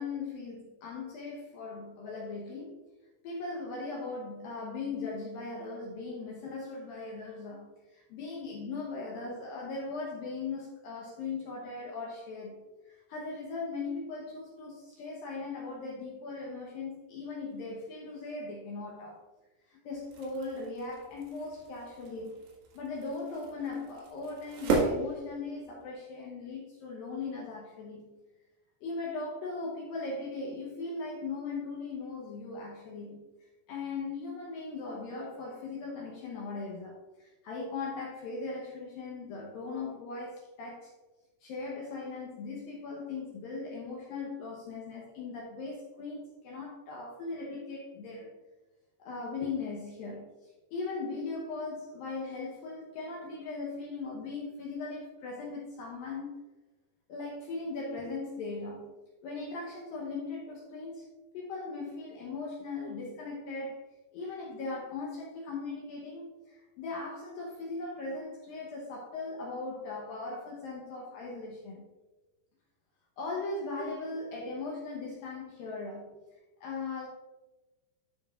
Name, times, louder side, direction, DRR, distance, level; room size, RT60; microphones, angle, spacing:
voice 1, 0.0-2.8 3.2-19.2 19.7-22.4 22.7-28.2 28.8-33.2 33.7-40.9 41.4-48.3 49.0-56.3 57.1-58.9 59.2-61.1 61.3-63.8 64.1-71.9 73.2-76.1 76.6-77.1, left 3 dB, 75° left, -3 dB, 2.2 m, -39 dB
sound 1, 19.9-25.9, right 3 dB, 70° right, 3.4 m, -36 dB
12.5 x 5.3 x 2.4 m, 1.2 s
omnidirectional pair, 5.2 m